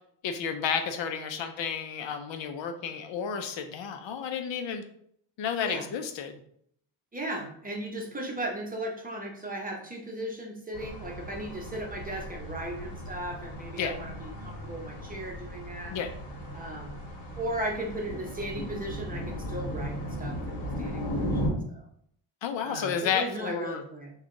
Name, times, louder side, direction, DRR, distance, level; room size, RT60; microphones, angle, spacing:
voice 1, 0.2-4.8 5.4-6.4 13.8-14.0 15.9-16.1 22.4-23.8, left 7 dB, 65° left, 6 dB, 0.7 m, -31 dB
voice 2, 7.1-16.0 16.5-17.0 17.4-21.4 21.7-21.8 22.6-24.1, right 1 dB, 20° right, 0 dB, 0.7 m, -36 dB
sound 1, 10.7-21.5, equal, 50° left, 1.7 m, -36 dB
5.5 x 2.4 x 3.7 m, 0.67 s
cardioid pair, 155°, 48 cm